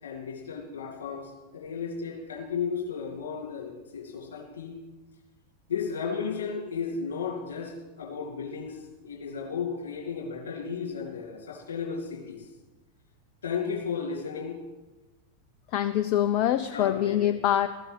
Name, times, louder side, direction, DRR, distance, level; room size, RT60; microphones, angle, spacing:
voice 1, 0.0-4.8 5.7-12.5 13.4-14.6 16.7-17.4, left 6 dB, 65° left, -1 dB, 3.4 m, -34 dB
voice 2, 15.7-17.7, left 11 dB, 45° left, 11 dB, 0.5 m, -24 dB
14.0 x 7.9 x 7.8 m, 1.1 s
figure-of-eight pair, 90°, 0 cm